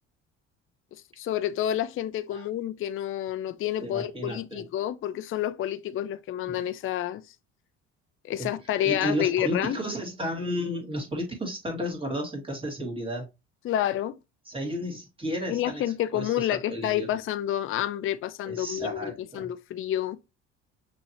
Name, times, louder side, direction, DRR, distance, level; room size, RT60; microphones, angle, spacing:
voice 1, 1.2-7.2 8.3-9.8 13.6-14.2 15.5-20.2, left 11 dB, 35° left, 0.5 m, -29 dB
voice 2, 3.8-4.6 6.5-6.6 8.4-8.5 8.8-13.3 14.5-15.8 16.1-17.2 18.5-19.5, equal, 15° right, 2.2 m, -33 dB
6.2 x 2.9 x 2.9 m
hypercardioid pair, 60°, 35 cm